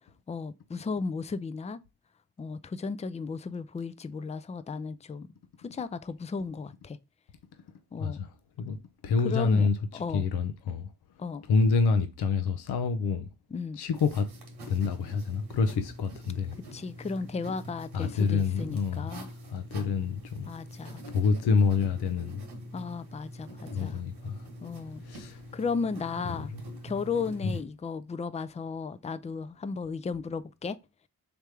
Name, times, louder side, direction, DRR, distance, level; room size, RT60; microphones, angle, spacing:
voice 1, 0.3-1.8 2.4-5.3 5.6-7.0 7.9-8.2 9.2-10.3 11.2-11.4 13.5-13.8 16.7-19.3 20.4-21.0 22.7-24.0 24.6-25.0 25.5-26.5 26.8-30.8, left 4 dB, 20° left, 0.4 m, -35 dB
voice 2, 9.0-9.7 10.1-10.9 11.5-13.3 13.8-14.3 14.7-16.6 17.9-19.1 19.5-20.5 21.1-22.4 23.7-24.4 25.1-25.4 27.4-27.5, left 4 dB, 80° left, 0.6 m, -27 dB
sound 1, 13.9-27.6, equal, 85° right, 1.3 m, -44 dB
3.4 x 3.0 x 4.8 m
supercardioid pair, 40°, 39 cm